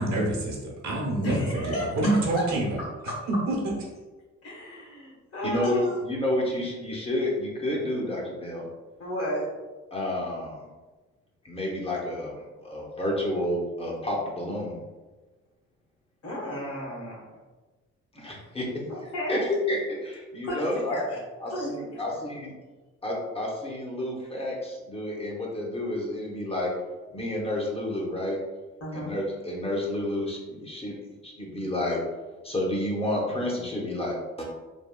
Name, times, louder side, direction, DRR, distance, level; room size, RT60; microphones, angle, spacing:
voice 1, 0.0-2.8 3.3-3.7, right 1 dB, 65° right, -2 dB, 0.9 m, -26 dB
voice 2, 1.2-2.4 4.4-5.9 9.0-9.5 16.2-17.2 18.9-19.5 20.4-21.2 21.5-22.0 28.8-29.2, equal, 50° left, -4 dB, 1.4 m, -33 dB
voice 3, 5.4-8.6 9.9-10.6 11.4-14.7 18.1-18.7 19.3-21.0 21.4-22.4 23.0-26.7 27.1-28.4 28.9-32.0 32.4-34.4, left 1 dB, 20° left, -3 dB, 0.8 m, -30 dB
3.4 x 2.2 x 2.2 m, 1.2 s
cardioid pair, 90°, 30 cm